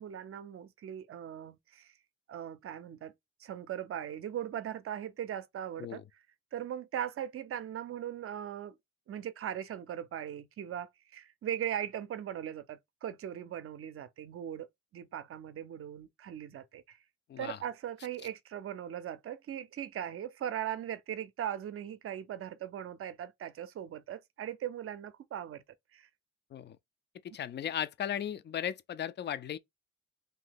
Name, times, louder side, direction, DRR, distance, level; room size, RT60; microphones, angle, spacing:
voice 1, 0.0-1.9 2.3-3.1 3.4-6.0 6.5-8.8 9.1-14.7 14.9-17.0 17.4-25.6 25.9-26.1, right 10 dB, 50° right, 0.6 m, -39 dB
voice 2, 27.3-29.6, left 10 dB, 35° left, 0.4 m, -36 dB
2.7 x 2.7 x 3.9 m
cardioid pair, 90°, 30 cm